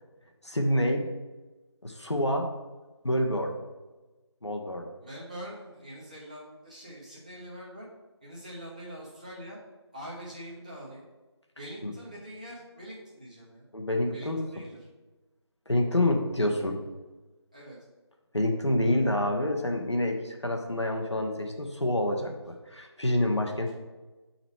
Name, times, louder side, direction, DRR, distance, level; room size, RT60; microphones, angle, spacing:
voice 1, 0.4-1.1 1.8-2.5 3.0-3.6 4.4-4.9 11.8-11.9 13.7-14.4 15.7-16.8 18.3-23.7, left 1 dB, 75° left, 3 dB, 1.2 m, -27 dB
voice 2, 5.0-7.9 8.2-9.6 9.9-11.0 11.6-13.7 14.1-14.8 17.5-17.8 23.3-23.7, equal, 15° right, -6 dB, 1.0 m, -44 dB
7.4 x 4.0 x 4.6 m, 1.2 s
figure-of-eight pair, 170°, 15 cm